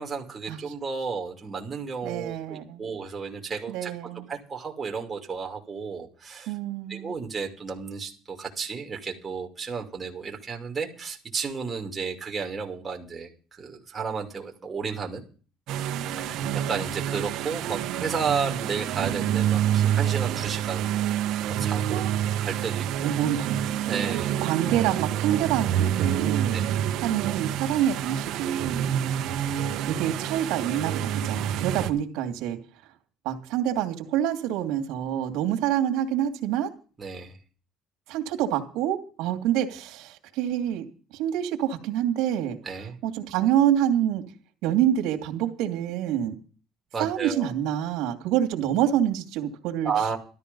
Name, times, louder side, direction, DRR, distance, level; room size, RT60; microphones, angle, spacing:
voice 1, 0.0-3.9 4.3-6.5 6.9-15.2 16.2-16.4 16.7-22.0 22.4-23.1 23.9-24.4 26.5-26.9 37.0-37.4 42.6-43.0 46.9-47.5 49.8-50.2, right 5 dB, 20° right, 1 dB, 2.7 m, -33 dB
voice 2, 2.0-2.8 3.7-4.3 6.5-7.2 16.2-16.6 21.9-22.1 23.0-23.5 24.4-26.6 27.0-28.8 29.8-32.6 33.2-36.7 38.1-40.9 41.1-42.6 43.0-44.2 44.6-46.3 47.0-49.9, right 10 dB, 80° right, 4 dB, 2.4 m, -27 dB
sound 1, 15.7-31.9, right 10 dB, 65° right, 1.4 m, -27 dB
13.0 x 13.0 x 5.4 m, 0.39 s
cardioid pair, 145°, 0 cm